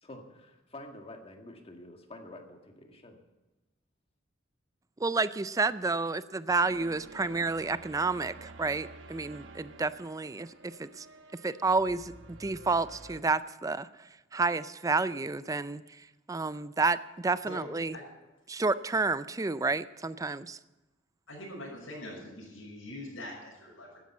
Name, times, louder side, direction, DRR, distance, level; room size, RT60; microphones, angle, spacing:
voice 1, 0.0-3.2, left 1 dB, 30° left, 3 dB, 1.8 m, -48 dB
voice 2, 5.0-11.1 11.4-18.0 18.5-20.6, right 3 dB, 15° right, 15 dB, 0.4 m, -30 dB
sound 1, 6.5-13.2, right 3 dB, 75° right, 1.1 m, -50 dB
voice 3, 17.4-18.0 21.3-24.0, left 1 dB, 85° left, -3 dB, 5.8 m, -43 dB
13.0 x 10.0 x 7.4 m, 1.1 s
head